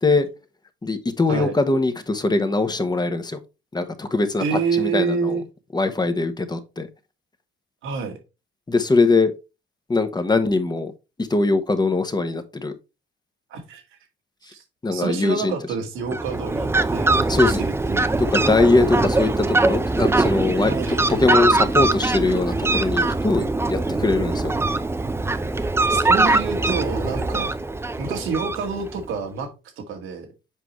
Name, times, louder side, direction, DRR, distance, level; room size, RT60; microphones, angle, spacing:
voice 1, 0.8-3.4 3.7-5.4 5.7-6.9 8.7-9.3 9.9-10.9 11.2-12.7 14.8-15.5 17.3-17.6 18.2-20.7 21.1-24.5, left 3 dB, 20° left, 1.0 m, -21 dB
voice 2, 4.4-5.4 7.8-8.2 13.5-13.8 14.4-14.6 14.9-18.3 20.6-21.2 25.9-27.5 28.0-29.5 29.8-30.3, right 5 dB, 85° right, 1.9 m, -28 dB
Fowl, 16.0-29.0, right 2 dB, 10° right, 0.5 m, -22 dB
7.5 x 4.9 x 3.1 m
cardioid pair, 90°, 20 cm